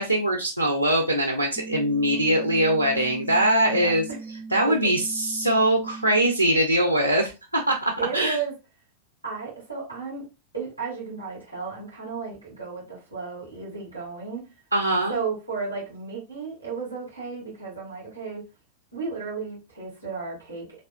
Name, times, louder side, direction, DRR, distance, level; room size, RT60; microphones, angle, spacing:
voice 1, 0.0-4.0 4.5-8.4 14.7-15.2, right 1 dB, 90° left, 0.6 m, -22 dB
sound 1, 1.6-6.5, right 4 dB, 10° right, 0.4 m, -39 dB
voice 2, 8.0-8.5 9.2-10.3 10.5-14.5 15.1-18.4 18.9-20.8, right 5 dB, 85° right, 1.9 m, -34 dB
4.2 x 2.9 x 2.5 m
figure-of-eight pair, 90°, 0 cm